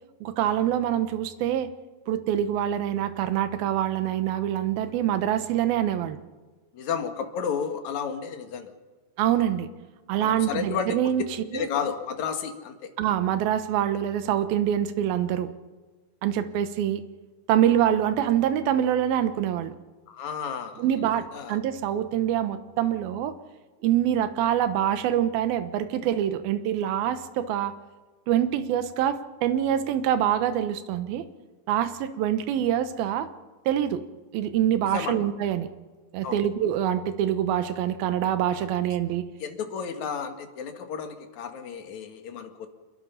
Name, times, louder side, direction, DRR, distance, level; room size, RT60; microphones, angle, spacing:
voice 1, 0.2-1.7 2.1-6.2 9.2-9.7 10.1-11.2 11.5-11.7 13.0-15.5 16.2-17.0 17.5-19.7 20.8-23.3 23.8-27.7 28.3-31.2 31.7-33.3 33.7-34.0 34.3-35.7 36.1-39.3, right 10 dB, 70° right, 11 dB, 2.8 m, -25 dB
voice 2, 6.7-8.7 10.2-11.1 11.5-12.9 20.1-20.9 21.3-21.6 34.9-35.2 36.2-36.4 39.4-42.7, left 7 dB, 55° left, 6 dB, 2.7 m, -32 dB
26.5 x 23.0 x 5.8 m, 1.3 s
omnidirectional pair, 4.6 m